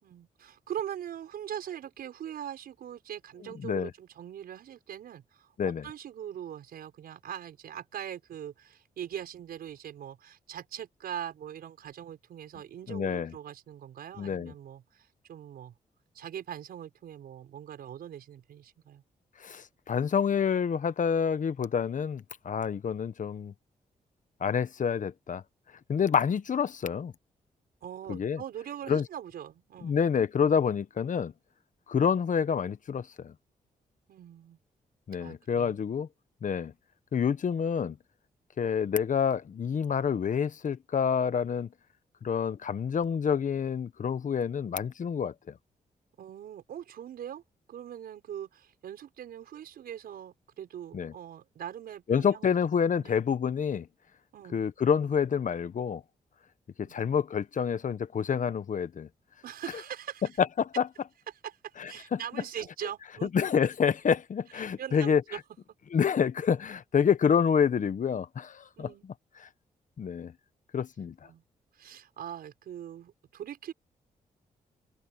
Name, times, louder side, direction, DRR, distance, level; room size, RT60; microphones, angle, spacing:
voice 1, 0.0-15.7 16.1-19.0 27.8-29.9 34.1-34.6 35.2-35.8 46.2-47.4 47.7-52.6 53.0-53.2 54.3-54.6 56.8-56.9 59.4-60.3 61.4-63.3 64.5-65.4 68.8-69.1 71.2-71.4 71.7-73.7, right 10 dB, 85° right, 5.7 m, -42 dB
voice 2, 12.9-13.3 14.2-14.5 19.4-23.5 24.4-25.4 25.9-27.1 28.1-28.4 28.9-29.0 29.8-31.3 31.9-33.3 35.1-36.1 36.4-36.7 37.1-38.0 38.6-41.7 42.2-45.5 50.9-51.1 52.1-53.9 54.5-56.0 56.8-59.1 60.4-60.9 61.8-62.2 63.3-65.2 65.9-68.9 70.0-70.3 70.7-71.1, left 7 dB, 60° left, 1.3 m, -28 dB
cardioid pair, 65°, 15 cm